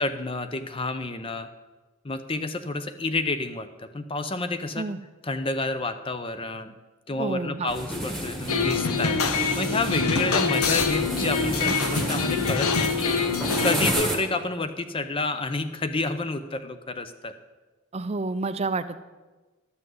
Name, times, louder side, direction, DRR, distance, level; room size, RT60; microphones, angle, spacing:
voice 1, 0.0-1.5 2.0-4.9 5.2-6.7 7.1-13.2 13.6-17.3, left 3 dB, 25° left, 10 dB, 0.6 m, -29 dB
voice 2, 7.2-7.7 10.0-10.1 17.9-19.0, right 3 dB, 30° right, 12 dB, 0.5 m, -29 dB
sound 1, 7.7-14.2, equal, ahead, 1.4 m, -31 dB
sound 2, 8.5-13.9, left 4 dB, 85° left, 1.0 m, -25 dB
12.5 x 5.7 x 7.8 m, 1.2 s
head